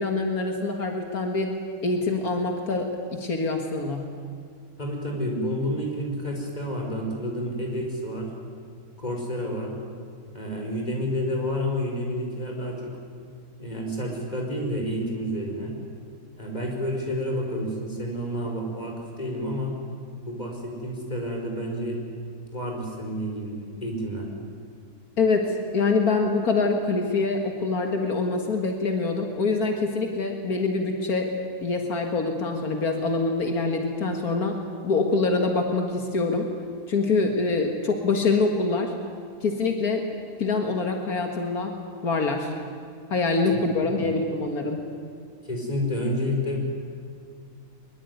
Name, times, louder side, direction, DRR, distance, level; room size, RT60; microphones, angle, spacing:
voice 1, 0.0-1.6 1.8-4.1 25.2-31.3 31.6-34.6 34.8-36.5 36.9-38.9 39.4-40.0 40.4-41.7 42.0-42.5 43.1-44.8, left 3 dB, 80° left, 3 dB, 2.4 m, -25 dB
voice 2, 4.8-8.3 9.0-9.7 10.3-12.9 13.6-15.7 16.4-19.7 20.2-22.0 22.5-24.3 43.5-43.9 45.4-46.6, equal, 25° left, 1 dB, 5.0 m, -30 dB
23.0 x 22.0 x 9.5 m, 2.3 s
omnidirectional pair, 1.6 m